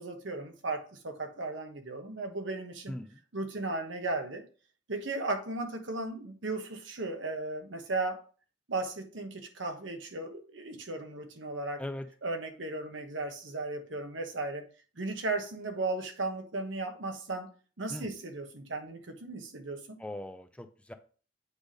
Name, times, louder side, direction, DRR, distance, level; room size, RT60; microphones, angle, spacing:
voice 1, 0.0-2.9 3.3-4.4 4.9-8.2 8.7-11.8 12.2-14.6 15.0-17.5 17.8-20.0, right 2 dB, 75° right, 1.2 m, -36 dB
voice 2, 2.9-3.2 11.8-12.1 17.9-18.1 20.0-20.9, left 1 dB, 5° left, 0.4 m, -40 dB
8.1 x 3.4 x 5.2 m
head